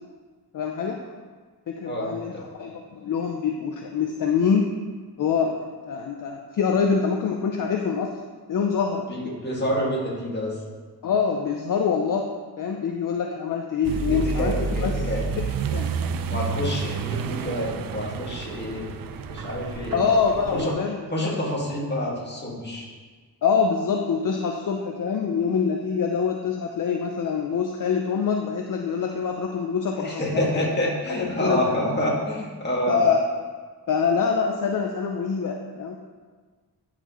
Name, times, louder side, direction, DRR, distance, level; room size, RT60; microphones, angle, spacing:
voice 1, 0.5-1.0 1.7-2.3 2.6-4.7 5.2-8.1 8.5-9.1 11.0-12.3 12.6-14.5 14.8-15.1 15.7-16.5 19.9-20.9 23.4-30.2 31.2-31.7 32.9-33.2 33.9-36.0, left 6 dB, 55° left, 2 dB, 0.6 m, -25 dB
voice 2, 1.9-2.4 9.1-10.6 14.0-15.2 16.3-18.9 19.2-20.0 20.5-20.8 21.1-22.9 30.0-33.0, equal, 25° left, -4 dB, 1.9 m, -28 dB
Accelerating revving vroom, 13.8-20.7, right 5 dB, 60° right, 0.5 m, -30 dB
10.5 x 4.3 x 3.0 m, 1.5 s
cardioid pair, 90°, 39 cm